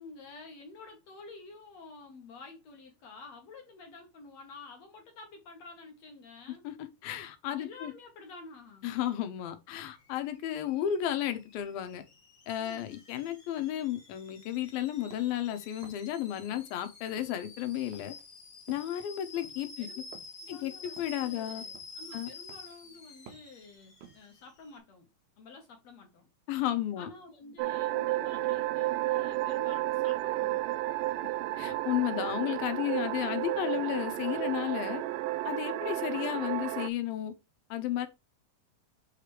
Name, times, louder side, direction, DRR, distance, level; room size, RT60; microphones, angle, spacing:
voice 1, 0.0-6.6 7.5-8.9 12.6-13.1 19.8-20.0 20.4-25.1 25.4-26.3 27.0-30.6, left 3 dB, 60° left, 1.9 m, -50 dB
voice 2, 7.0-7.9 8.8-12.0 12.5-18.1 18.7-19.9 20.5-21.6 22.1-22.3 26.5-27.1 31.6-35.0 35.4-37.3 37.7-38.1, left 12 dB, 85° left, 2.7 m, -33 dB
Alarm / Boiling, 9.9-24.8, left 3 dB, 30° left, 2.0 m, -50 dB
sound 1, 14.9-16.9 17.1-24.3, right 7 dB, 65° right, 2.5 m, -55 dB
sound 2, 27.6-36.9, right 17 dB, 80° right, 2.0 m, -32 dB
7.6 x 5.0 x 3.1 m
omnidirectional pair, 4.2 m